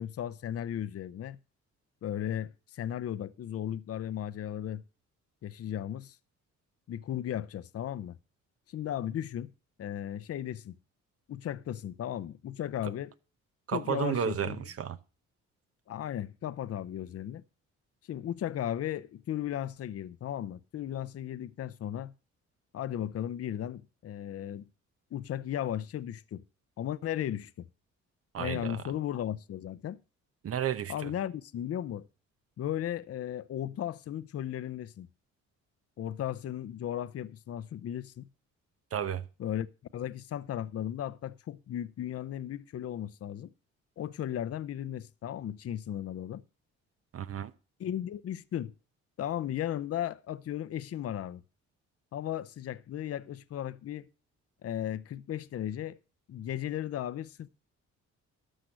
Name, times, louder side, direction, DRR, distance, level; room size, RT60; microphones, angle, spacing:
voice 1, 0.0-1.4 2.0-4.8 5.4-6.2 6.9-8.2 8.7-9.5 9.8-10.8 11.3-13.1 13.7-14.7 15.9-17.4 18.1-22.1 22.7-24.6 25.1-26.4 26.8-27.7 28.4-30.0 30.9-32.1 32.6-35.1 36.0-38.3 39.4-39.7 39.9-43.5 44.0-46.4 47.8-48.7 49.2-51.4 52.1-54.1 54.6-56.0 56.3-57.5, left 11 dB, 50° left, 0.7 m, -36 dB
voice 2, 13.7-15.0 28.3-28.8 30.4-31.1 38.9-39.2 47.1-47.5, right 8 dB, 50° right, 0.9 m, -32 dB
13.0 x 6.0 x 6.3 m
cardioid pair, 90°, 30 cm